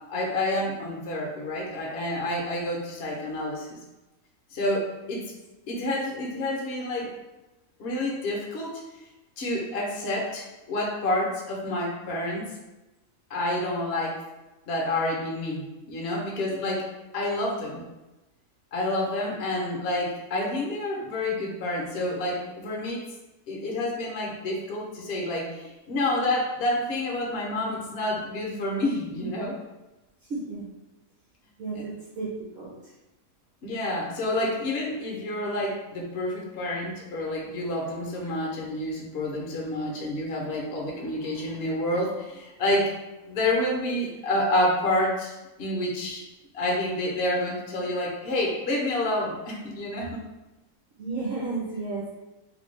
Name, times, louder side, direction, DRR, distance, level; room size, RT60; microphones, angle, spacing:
voice 1, 0.1-3.8 4.5-5.3 5.7-7.1 7.8-8.8 9.4-12.5 13.3-14.2 14.7-16.9 17.1-17.8 18.7-23.1 23.5-29.5 31.7-31.8 33.6-42.9 43.3-46.2 46.5-50.2, left 1 dB, 55° left, -3 dB, 0.8 m, -28 dB
voice 2, 30.3-30.7 31.6-32.7 51.0-52.1, right 3 dB, 55° right, -7 dB, 0.9 m, -32 dB
3.3 x 2.2 x 3.1 m, 1.0 s
omnidirectional pair, 1.5 m